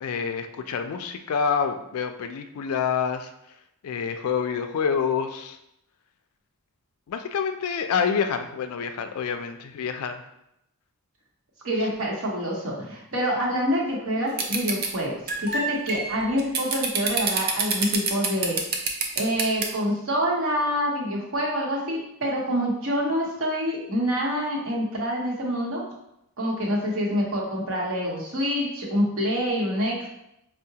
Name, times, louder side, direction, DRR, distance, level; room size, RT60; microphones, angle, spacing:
voice 1, 0.0-3.3 3.8-5.6 7.1-10.2 11.8-11.9, left 6 dB, 75° left, 7 dB, 0.3 m, -27 dB
voice 2, 11.6-18.6 19.2-25.8 26.4-30.1, equal, 60° right, -2 dB, 0.9 m, -26 dB
sound 1, 14.4-14.9 15.3-19.6, right 5 dB, 45° right, 0.4 m, -25 dB
4.6 x 2.1 x 2.7 m, 0.81 s
head